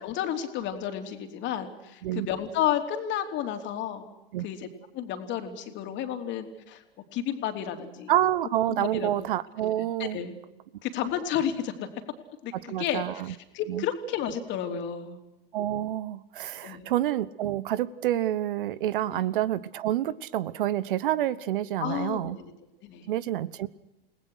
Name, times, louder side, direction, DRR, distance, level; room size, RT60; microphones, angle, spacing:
voice 1, 0.0-4.0 4.4-4.7 4.9-6.8 7.1-8.1 8.8-9.3 10.0-10.4 10.8-11.9 12.4-15.2 16.6-16.9 19.1-19.2 21.8-22.5 22.8-23.1, left 9 dB, 40° left, 5 dB, 3.4 m, -32 dB
voice 2, 8.1-10.2 12.5-13.3 13.7-13.8 15.5-22.4 23.1-23.7, right 12 dB, 60° right, 18 dB, 1.1 m, -28 dB
29.5 x 19.0 x 6.5 m, 0.96 s
figure-of-eight pair, 95°, 29 cm